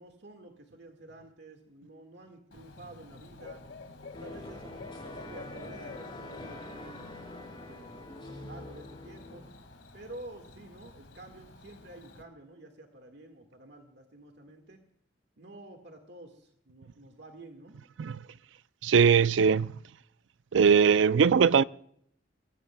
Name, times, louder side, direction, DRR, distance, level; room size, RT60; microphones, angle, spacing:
voice 1, 0.0-3.6 4.2-7.1 7.7-9.5 9.9-14.8 15.4-17.8, right 2 dB, 65° right, 1.7 m, -50 dB
Bird / Cricket, 2.5-12.2, left 3 dB, 90° left, 2.1 m, -50 dB
sound 1, 4.1-9.5, left 1 dB, 25° left, 6.1 m, -45 dB
voice 2, 18.8-19.7 20.5-21.6, right 6 dB, 80° right, 0.4 m, -21 dB
23.5 x 15.5 x 2.3 m
head